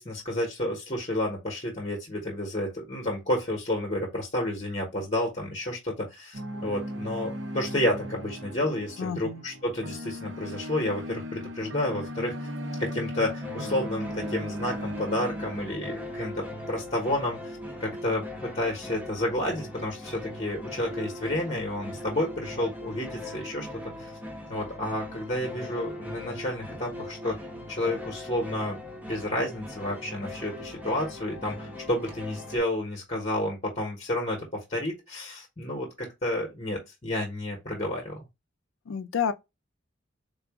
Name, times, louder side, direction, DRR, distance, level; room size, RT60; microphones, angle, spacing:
voice 1, 0.0-12.3 12.8-23.7 24.0-24.1 24.5-27.4 27.7-28.8 29.1-38.3, left 1 dB, 30° left, 1.0 m, -30 dB
sound 1, 6.3-15.7, equal, 65° right, 0.7 m, -37 dB
voice 2, 9.0-9.4 38.9-39.3, left 7 dB, 75° left, 0.4 m, -29 dB
sound 2, 13.4-32.6, left 1 dB, 10° right, 0.8 m, -40 dB
3.8 x 2.4 x 3.5 m
head